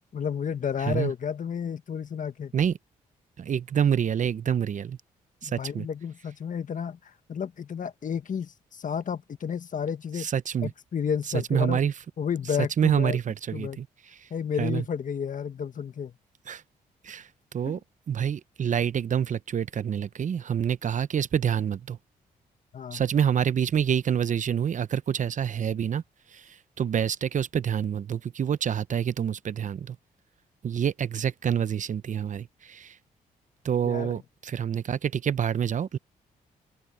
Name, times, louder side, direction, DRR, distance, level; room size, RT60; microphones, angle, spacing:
voice 1, 0.1-2.5 5.4-10.3 10.6-11.8 12.2-13.2 13.5-13.8 14.3-16.1 17.6-17.8 22.7-23.0 33.8-34.2, left 7 dB, 55° left, 1.6 m, -31 dB
voice 2, 3.4-5.0 5.4-5.9 10.2-10.7 11.3-11.9 12.8-13.9 14.2-14.3 14.6-14.8 16.5-16.6 17.0-17.8 18.1-22.0 22.9-26.0 26.3-30.0 30.6-33.0 33.6-36.0, right 8 dB, 50° right, 0.8 m, -27 dB
open air
cardioid pair, 65°, 16 cm